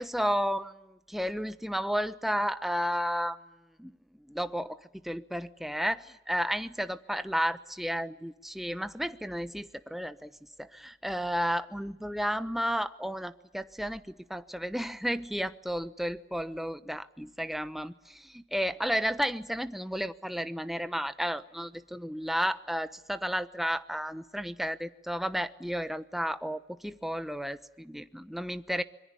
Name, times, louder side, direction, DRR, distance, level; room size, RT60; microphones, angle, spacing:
voice 1, 0.0-3.4 3.8-3.9 4.3-10.3 10.6-28.8, equal, ahead, 12 dB, 1.0 m, -32 dB
25.5 x 23.0 x 9.9 m, 0.91 s
head